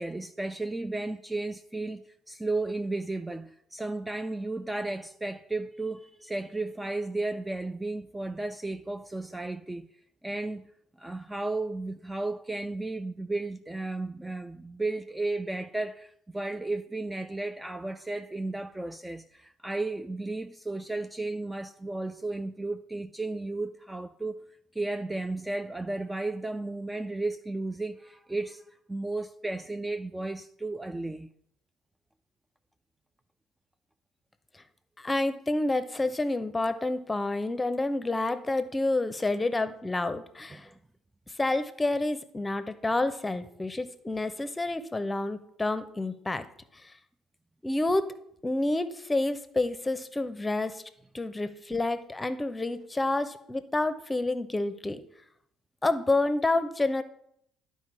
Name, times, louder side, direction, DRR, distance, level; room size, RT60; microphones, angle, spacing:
voice 1, 0.0-2.0 2.3-9.9 10.2-10.7 11.0-24.5 24.8-28.6 28.9-31.3 40.5-40.7, right 2 dB, 10° right, 0.4 m, -34 dB
voice 2, 35.0-40.7 41.4-46.4 47.6-48.1 48.4-50.8 51.1-55.0 55.8-57.0, left 2 dB, 20° left, 0.7 m, -29 dB
10.5 x 4.5 x 4.7 m
hypercardioid pair, 60°, 0 cm